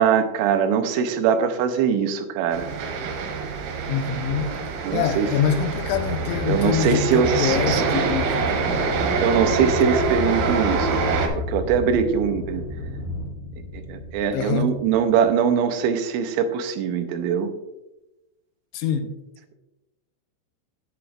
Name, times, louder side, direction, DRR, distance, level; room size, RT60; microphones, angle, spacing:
voice 1, 0.0-2.7 4.8-5.3 6.5-7.8 9.2-12.6 13.7-17.5, right 7 dB, 85° right, 3.1 m, -22 dB
sound 1, 2.5-11.3, right 4 dB, 65° right, 2.9 m, -26 dB
voice 2, 3.9-4.5 4.9-8.6 14.3-14.7 18.7-19.1, left 7 dB, 85° left, 3.1 m, -25 dB
Aircraft, 5.8-15.3, left 2 dB, 60° left, 3.8 m, -32 dB
10.5 x 9.3 x 2.4 m
omnidirectional pair, 5.4 m